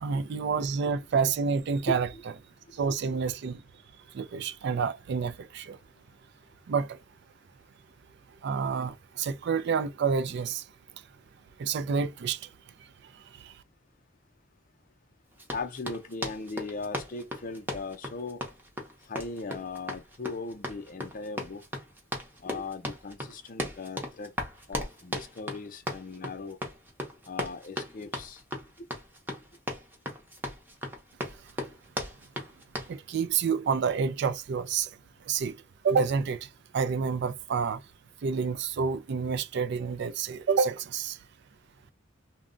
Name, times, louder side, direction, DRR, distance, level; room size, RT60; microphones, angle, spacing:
voice 1, 0.0-2.1 2.8-3.6 4.1-5.8 6.7-6.9 8.4-10.6 11.6-12.4 32.9-34.9 35.3-35.6 35.8-36.4 36.7-37.8 38.2-41.2, right 5 dB, 60° right, 0.4 m, -28 dB
Run, 15.4-33.0, equal, 10° right, 0.7 m, -37 dB
voice 2, 15.5-18.4 19.1-21.6 22.4-24.3 24.7-26.6 27.3-28.4 28.8-28.9, left 3 dB, 45° left, 0.5 m, -38 dB
2.2 x 2.1 x 3.7 m
head